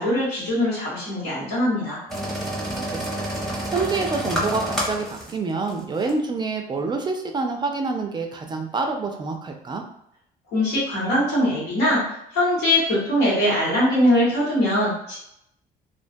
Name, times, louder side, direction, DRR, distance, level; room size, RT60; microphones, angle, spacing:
voice 1, 0.0-2.0 10.5-12.0 12.3-15.2, left 1 dB, 90° left, -6 dB, 1.4 m, -21 dB
sound 1, 2.1-5.3 5.7-5.8 6.0-6.1, equal, ahead, 0.7 m, -28 dB
voice 2, 2.7-3.3 3.7-9.8, right 3 dB, 25° right, 3 dB, 0.3 m, -27 dB
2.4 x 2.2 x 2.5 m, 0.76 s
cardioid pair, 110°, 17 cm